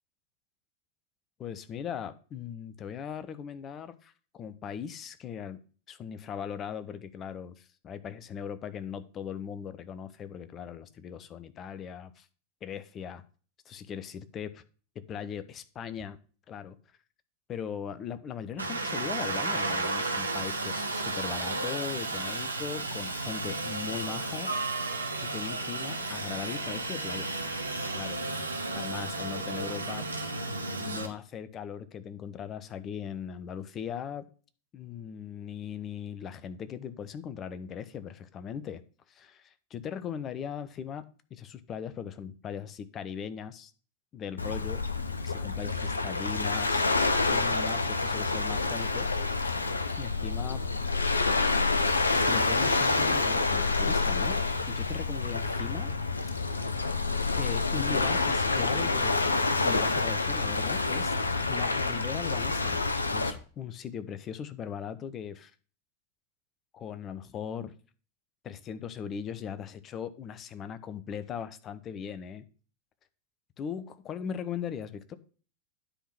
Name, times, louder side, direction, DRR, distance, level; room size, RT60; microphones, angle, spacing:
voice 1, 1.4-5.6 5.9-12.3 12.6-13.2 13.7-14.6 14.9-16.2 16.5-16.8 17.5-24.5 25.2-27.4 27.8-28.2 28.7-30.1 30.8-34.2 34.7-38.8 39.1-41.0 41.3-43.7 44.1-44.8 45.2-46.8 47.3-49.1 50.0-50.6 52.1-54.4 54.7-55.9 57.4-59.2 59.6-61.1 61.5-62.8 63.1-65.5 66.7-67.7 68.4-72.4 73.6-75.2, left 8 dB, 30° left, 0.7 m, -39 dB
Aircraft, 18.6-31.1, right 2 dB, 80° right, 1.0 m, -33 dB
Waves surf, 44.4-63.3, left 3 dB, 80° left, 0.7 m, -28 dB
10.0 x 3.8 x 6.0 m
figure-of-eight pair, 90°, 0 cm